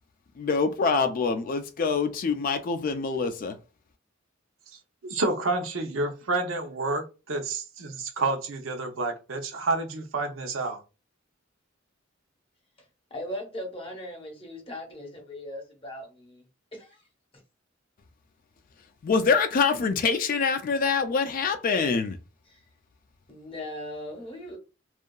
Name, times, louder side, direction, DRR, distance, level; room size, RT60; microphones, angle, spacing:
voice 1, 0.4-3.6 19.0-22.2, left 5 dB, 45° left, 0.3 m, -25 dB
voice 2, 5.0-10.8, right 3 dB, 80° right, 0.7 m, -29 dB
voice 3, 13.1-16.5 16.7-17.1 22.5-22.6 23.3-24.6, left 1 dB, 30° left, 0.9 m, -39 dB
2.8 x 2.4 x 2.2 m
head